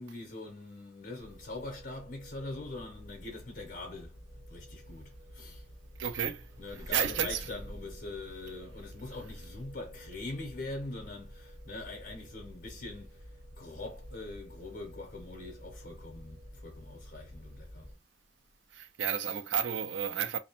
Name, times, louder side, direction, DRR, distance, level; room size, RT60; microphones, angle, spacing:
voice 1, 0.0-4.2 4.5-5.6 6.6-13.3 13.6-17.9, left 2 dB, 50° left, 0.7 m, -43 dB
sound 1, 1.2-18.0, equal, 60° right, 0.8 m, -50 dB
voice 2, 6.0-6.4 6.9-7.5 18.7-20.4, right 8 dB, 85° right, 0.4 m, -31 dB
sound 2, 6.3-9.6, equal, 20° right, 0.5 m, -50 dB
2.5 x 2.1 x 2.9 m
head